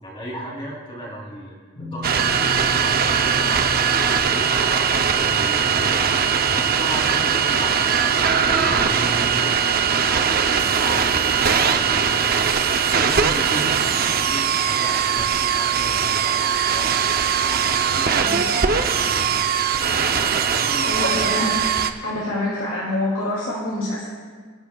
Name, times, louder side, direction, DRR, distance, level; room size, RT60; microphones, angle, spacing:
voice 1, 0.0-11.3 11.6-17.0 17.4-19.2 20.2-21.1, right 1 dB, 25° left, -2 dB, 3.2 m, -35 dB
sound 1, 1.8-14.7, equal, 40° left, 4.4 m, -40 dB
sound 2, 2.0-21.9, right 7 dB, 45° right, 0.7 m, -20 dB
voice 2, 18.1-18.4 20.8-21.7 22.0-24.1, left 1 dB, 75° left, -5 dB, 2.8 m, -26 dB
29.5 x 11.0 x 2.4 m, 1.5 s
head